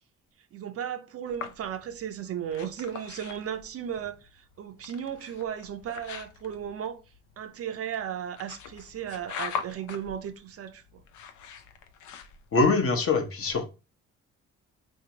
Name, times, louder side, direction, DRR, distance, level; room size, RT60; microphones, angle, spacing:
voice 1, 0.5-7.0 7.4-11.0, right 9 dB, 50° right, 0.5 m, -35 dB
sound 1, 1.3-12.7, left 7 dB, 75° left, 0.5 m, -42 dB
voice 2, 12.5-13.6, left 3 dB, 45° left, 0.8 m, -23 dB
3.5 x 2.7 x 2.8 m
cardioid pair, 90°, 30 cm